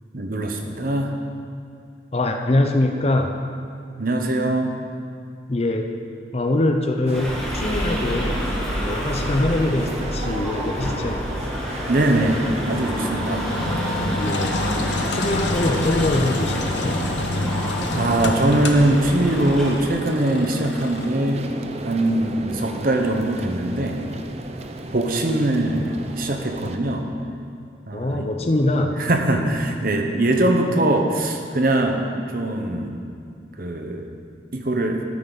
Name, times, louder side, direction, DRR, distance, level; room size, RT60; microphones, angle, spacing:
voice 1, 0.1-1.1 4.0-4.7 11.9-12.4 12.7-13.4 17.9-21.4 21.8-24.0 24.9-27.1 27.9-28.3 29.0-32.1 32.3-33.0 33.6-34.0 34.5-35.0, right 1 dB, 50° right, 3 dB, 1.0 m, -22 dB
voice 2, 2.1-3.3 5.5-5.9 6.3-8.4 8.8-11.2 14.2-14.6 15.0-17.0 27.9-29.0, left 1 dB, 35° left, 4 dB, 0.6 m, -23 dB
sound 1, 7.1-19.7, equal, 5° left, 1.4 m, -29 dB
sound 2, 7.1-26.8, right 2 dB, 35° right, 0.5 m, -35 dB
Engine, 13.5-21.1, left 2 dB, 70° left, 1.0 m, -28 dB
13.5 x 8.7 x 4.1 m, 2.4 s
head